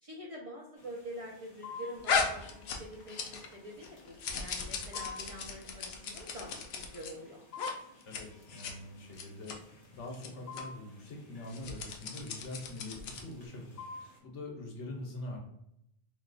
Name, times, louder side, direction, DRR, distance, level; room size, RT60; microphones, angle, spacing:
voice 1, 0.0-7.4, equal, 40° right, -3 dB, 0.5 m, -46 dB
sound 1, 0.8-14.2, left 5 dB, 40° left, 0.8 m, -51 dB
sound 2, 2.0-3.6 3.8-7.1 7.5-7.7 8.0-8.2 8.5-8.7 9.1-9.6 10.1-10.3 10.5-10.6 11.4-13.3, left 5 dB, 70° left, 0.8 m, -36 dB
voice 2, 8.1-13.8 14.2-15.4, left 2 dB, 85° left, 0 dB, 1.2 m, -44 dB
2.9 x 2.3 x 3.7 m, 0.77 s
omnidirectional pair, 1.2 m